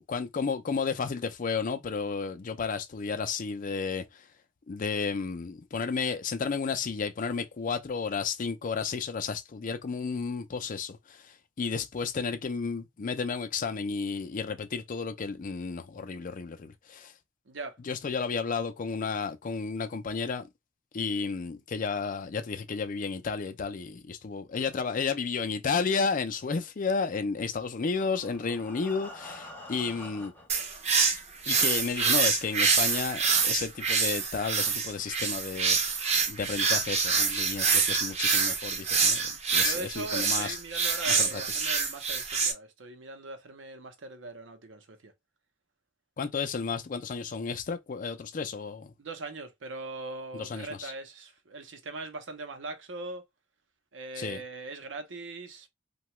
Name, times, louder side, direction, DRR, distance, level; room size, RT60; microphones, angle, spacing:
voice 1, 0.0-4.2 4.7-17.1 17.8-20.5 20.9-30.3 31.5-35.8 36.3-40.6 41.1-41.4 46.2-48.9 50.3-50.9 54.2-54.4, left 5 dB, 45° left, 0.4 m, -32 dB
voice 2, 17.5-17.8 39.5-45.1 49.0-53.2 53.9-55.7, right 2 dB, 75° right, 0.7 m, -40 dB
Breathing, 27.7-30.6 31.4-31.5 31.9-32.0 32.4-32.5, left 1 dB, 10° left, 0.7 m, -46 dB
sound 1, 30.5-42.5, right 5 dB, 35° right, 0.6 m, -26 dB
2.8 x 2.3 x 2.9 m
head